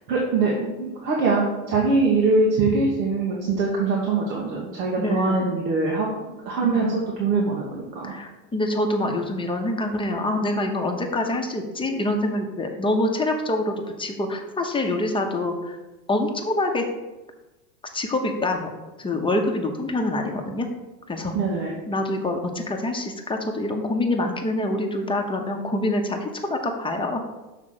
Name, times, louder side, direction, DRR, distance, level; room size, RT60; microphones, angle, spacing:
voice 1, 0.1-6.1 6.4-8.1 21.3-21.7, right 3 dB, 80° right, -2 dB, 1.5 m, -23 dB
voice 2, 5.0-5.5 6.6-7.0 8.0-15.8 16.1-16.8 17.9-18.7 19.0-20.7 21.1-21.3 21.9-27.2, left 1 dB, 10° left, 3 dB, 0.9 m, -26 dB
6.6 x 3.6 x 6.2 m, 1.1 s
hypercardioid pair, 105°, 50 cm